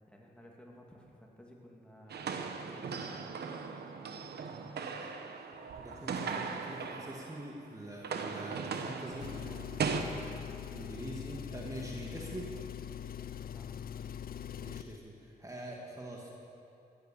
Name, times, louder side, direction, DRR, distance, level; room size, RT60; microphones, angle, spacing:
voice 1, 0.1-3.2 13.5-13.7, equal, 5° left, -1 dB, 2.6 m, -56 dB
sound 1, 2.1-7.6 7.8-10.0, right 5 dB, 90° right, 1.0 m, -38 dB
voice 2, 5.7-9.3 10.7-12.6 14.3-16.3, right 1 dB, 20° right, -2 dB, 2.0 m, -44 dB
Engine, 9.1-15.0, left 9 dB, 65° left, 0.5 m, -42 dB
15.0 x 10.5 x 7.1 m, 2.6 s
cardioid pair, 75°, 16 cm